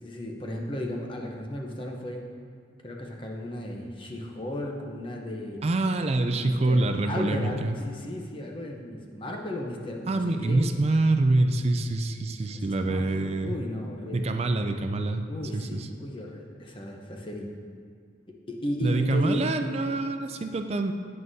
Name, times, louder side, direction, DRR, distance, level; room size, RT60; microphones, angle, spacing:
voice 1, 0.0-2.3 2.8-5.6 6.3-10.7 12.5-14.3 15.3-17.5 18.3-19.6, left 1 dB, 25° left, 1 dB, 0.8 m, -35 dB
voice 2, 5.6-7.7 10.1-13.6 14.1-15.2 15.5-15.9 18.8-20.9, right 2 dB, 35° right, 7 dB, 0.4 m, -25 dB
9.3 x 9.2 x 2.7 m, 2.1 s
head